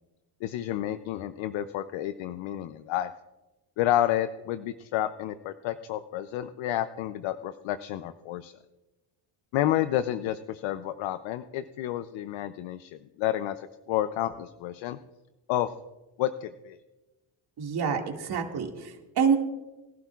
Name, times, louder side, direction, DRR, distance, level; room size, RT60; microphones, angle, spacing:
voice 1, 0.4-3.1 3.8-8.6 9.5-15.0 15.5-15.7 16.2-16.8, left 12 dB, 80° left, 11 dB, 0.7 m, -30 dB
voice 2, 17.6-19.4, right 6 dB, 55° right, 2 dB, 2.2 m, -27 dB
22.5 x 11.5 x 2.4 m, 1.1 s
cardioid pair, 105°, 46 cm